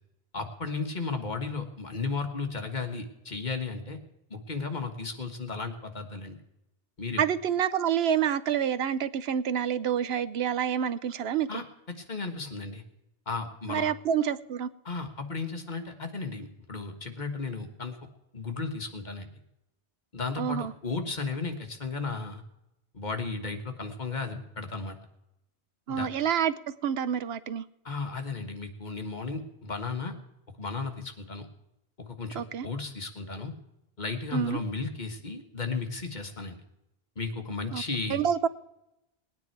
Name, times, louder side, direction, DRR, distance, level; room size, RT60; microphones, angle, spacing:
voice 1, 0.3-4.0 4.3-6.4 7.0-7.2 11.5-12.8 13.3-13.9 14.8-18.0 18.3-19.3 20.1-20.6 20.8-22.4 22.9-25.0 25.9-26.1 27.8-30.1 30.6-31.4 32.0-33.5 34.0-36.6 37.2-38.2, left 4 dB, 45° left, 1.5 m, -34 dB
voice 2, 7.2-11.5 13.7-14.7 20.4-20.7 25.9-27.6 32.4-32.7 34.3-34.6 37.7-37.8 38.1-38.5, right 8 dB, 70° right, 0.8 m, -28 dB
19.5 x 9.5 x 4.6 m
omnidirectional pair, 1.1 m